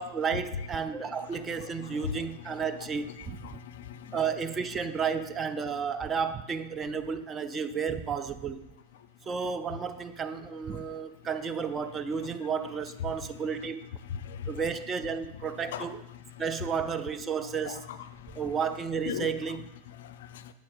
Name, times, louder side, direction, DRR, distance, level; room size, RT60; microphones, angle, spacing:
voice 1, 0.0-3.5 4.1-8.7 9.3-13.8 14.5-16.0 16.4-17.8 18.4-19.6, right 6 dB, 20° right, 10 dB, 0.4 m, -32 dB
voice 2, 0.6-4.3 4.7-5.0 5.6-5.8 8.9-9.3 10.7-11.4 12.1-12.3 13.0-14.8 15.3-16.8 17.4-18.7 19.0-20.5, left 8 dB, 55° left, 12 dB, 0.4 m, -42 dB
8.4 x 8.1 x 2.4 m, 0.93 s
figure-of-eight pair, 90°, 0 cm